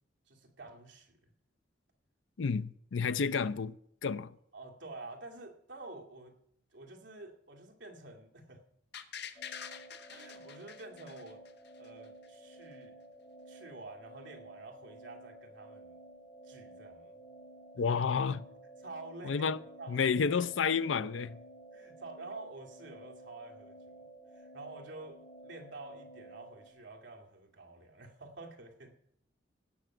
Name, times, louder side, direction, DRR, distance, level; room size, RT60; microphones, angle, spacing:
voice 1, 0.3-1.2 4.5-6.4 6.7-8.6 10.1-11.4 11.8-13.0 13.5-15.9 16.4-17.2 17.9-18.0 18.8-19.5 19.8-20.4 21.7-24.1 24.3-28.9, right 2 dB, 70° right, 2.2 m, -49 dB
voice 2, 2.4-3.8 4.0-4.3 17.8-18.4 19.2-19.6 19.9-21.4, left 5 dB, 80° left, 0.5 m, -30 dB
sound 1, 8.9-11.9 12.2-12.3, left 8 dB, 60° left, 1.1 m, -46 dB
sound 2, 9.4-26.7, right 2 dB, 25° left, 2.3 m, -53 dB
17.0 x 5.9 x 7.6 m
head